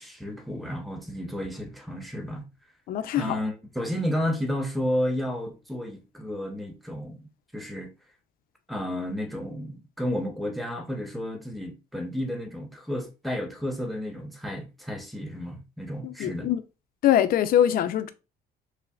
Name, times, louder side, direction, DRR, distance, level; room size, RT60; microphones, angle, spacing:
voice 1, 0.0-2.4 3.1-7.9 8.7-16.5, equal, ahead, 0.8 m, -32 dB
voice 2, 2.9-3.4 16.0-16.6 17.0-18.1, left 11 dB, 60° left, 0.5 m, -23 dB
5.6 x 2.1 x 2.3 m
cardioid pair, 110°, 17 cm